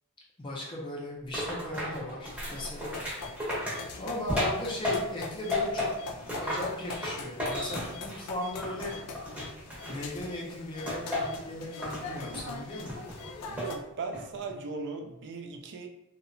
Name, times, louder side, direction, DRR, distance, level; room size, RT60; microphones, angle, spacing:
voice 1, 0.4-3.5 4.0-5.9 6.4-8.9 9.9-13.0, left 1 dB, 20° left, -4 dB, 0.4 m, -37 dB
sound 1, 1.3-5.2 5.5-8.3 8.6-10.3 10.9-11.4 11.8-12.5 12.9-13.8 14.1-14.5, left 1 dB, 5° right, 0.7 m, -34 dB
sound 2, 2.3-13.8, left 3 dB, 85° left, 0.3 m, -43 dB
Cricket, 7.3-8.1, left 1 dB, 75° right, 0.9 m, -44 dB
voice 2, 13.5-15.9, right 4 dB, 55° right, 4 dB, 0.3 m, -38 dB
2.7 x 2.1 x 2.5 m, 0.91 s
head